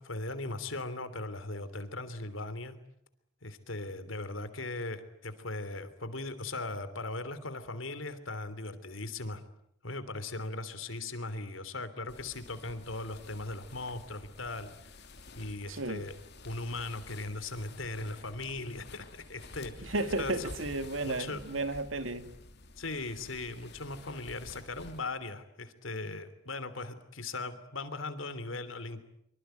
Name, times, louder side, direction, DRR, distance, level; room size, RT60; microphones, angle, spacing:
voice 1, 0.0-2.8 3.4-9.4 9.8-15.1 15.3-16.1 16.4-20.5 21.0-21.4 22.8-29.0, left 2 dB, 80° left, 12 dB, 3.2 m, -39 dB
sound 1, 12.1-25.0, left 2 dB, 60° left, 3.0 m, -50 dB
voice 2, 15.7-16.0 19.9-22.3, right 2 dB, 80° right, 10 dB, 2.4 m, -33 dB
25.0 x 24.5 x 9.2 m, 0.72 s
head